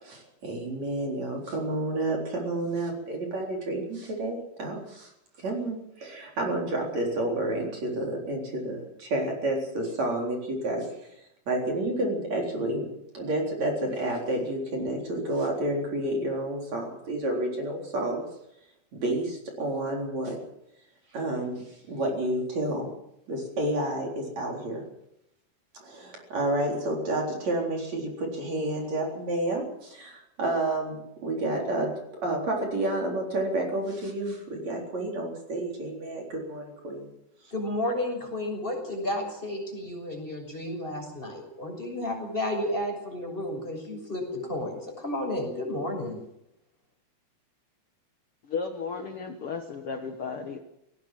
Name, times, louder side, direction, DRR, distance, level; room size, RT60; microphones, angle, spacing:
voice 1, 0.0-5.1 5.4-10.9 11.5-12.9 13.1-18.2 18.9-20.4 21.1-22.9 23.3-24.9 25.8-31.9 32.2-37.1, right 1 dB, 45° right, 0 dB, 5.0 m, -30 dB
voice 2, 37.5-46.2, left 1 dB, 10° left, 3 dB, 5.9 m, -32 dB
voice 3, 48.5-50.6, left 5 dB, 75° left, 5 dB, 1.3 m, -34 dB
18.5 x 18.5 x 7.7 m, 0.80 s
omnidirectional pair, 4.7 m